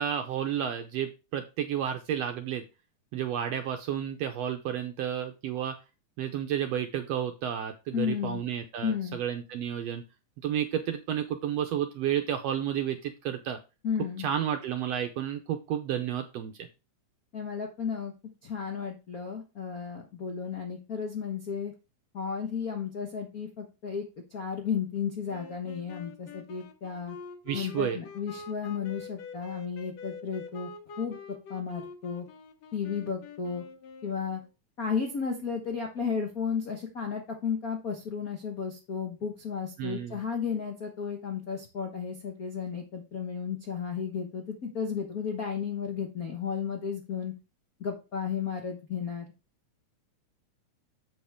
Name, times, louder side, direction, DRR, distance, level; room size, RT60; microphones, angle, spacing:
voice 1, 0.0-2.6 3.1-5.7 6.2-10.0 10.4-13.6 14.2-16.7 27.5-28.0 39.8-40.2, right 9 dB, 80° right, 6 dB, 1.5 m, -31 dB
voice 2, 7.9-8.4 8.8-9.2 13.8-14.3 17.3-18.1 18.4-21.7 22.1-27.2 27.5-30.7 31.0-31.2 31.5-32.2 32.7-33.6 34.0-34.4 34.8-47.3 47.8-49.3, left 6 dB, 90° left, 2 dB, 0.7 m, -33 dB
sound 1, 25.3-34.5, left 4 dB, 65° left, 2.0 m, -45 dB
7.8 x 6.6 x 3.5 m, 0.29 s
omnidirectional pair, 3.6 m